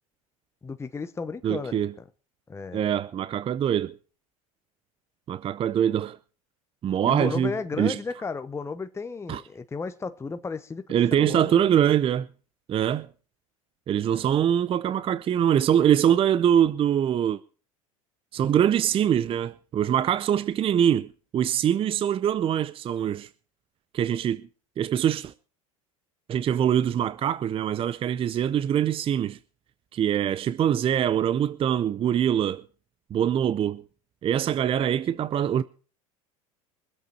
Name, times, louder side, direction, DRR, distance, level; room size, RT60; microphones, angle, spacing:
voice 1, 0.6-1.9 2.5-2.8 7.0-11.7 14.1-14.3, left 4 dB, 15° left, 0.9 m, -34 dB
voice 2, 1.4-1.9 2.7-4.0 5.3-6.2 6.8-7.5 7.8-8.0 9.3-9.4 10.9-12.3 12.7-13.1 13.9-17.4 18.3-23.3 23.9-24.5 24.8-25.3 26.3-29.4 29.9-32.6 33.1-33.8 34.2-35.6, right 9 dB, 30° right, 0.6 m, -23 dB
23.5 x 8.1 x 4.4 m
hypercardioid pair, 95°, 18 cm